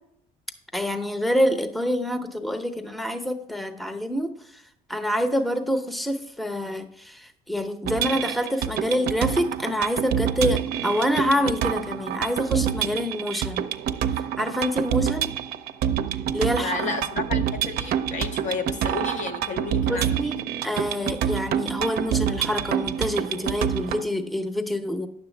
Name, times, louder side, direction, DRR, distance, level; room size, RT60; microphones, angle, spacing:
voice 1, 0.7-4.6 4.9-13.6 14.4-15.4 16.3-17.0 19.9-25.1, equal, ahead, 0.7 m, -26 dB
sound 1, 7.9-24.0, right 9 dB, 65° right, 0.5 m, -27 dB
voice 2, 16.6-20.3, left 5 dB, 45° left, 0.7 m, -32 dB
9.4 x 7.2 x 3.3 m
cardioid pair, 110°, 17 cm